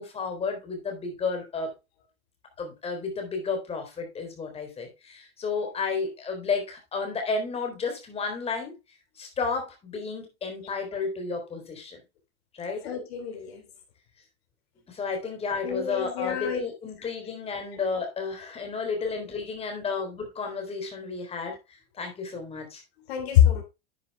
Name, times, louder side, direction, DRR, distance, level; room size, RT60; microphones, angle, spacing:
voice 1, 0.0-1.7 2.6-8.8 9.2-12.0 12.5-12.9 14.9-22.8, left 4 dB, 20° left, 3.8 m, -32 dB
voice 2, 12.8-13.6 15.6-16.6 23.1-23.6, left 10 dB, 85° left, 3.9 m, -24 dB
10.0 x 9.9 x 2.3 m
supercardioid pair, 155°, 30 cm